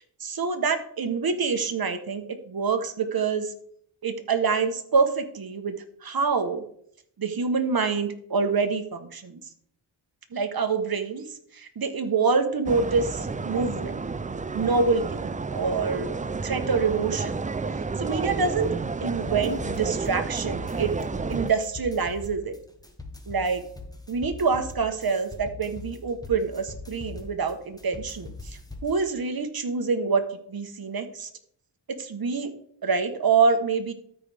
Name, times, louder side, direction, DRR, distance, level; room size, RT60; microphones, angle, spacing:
voice 1, 0.0-3.5 4.0-5.7 6.0-6.6 7.2-9.4 10.3-11.2 11.6-14.0 14.5-16.1 16.4-17.4 18.0-18.7 19.0-20.9 21.3-22.5 23.3-23.6 24.1-28.3 28.8-30.2 30.5-31.3 32.0-32.5 32.8-33.9, right 5 dB, 50° right, 8 dB, 1.1 m, -26 dB
sound 1, 12.7-21.5, right 4 dB, 20° right, 0.3 m, -31 dB
sound 2, 19.2-29.0, left 3 dB, 10° left, 1.0 m, -42 dB
13.0 x 5.0 x 3.4 m, 0.64 s
wide cardioid pair, 90°, 47 cm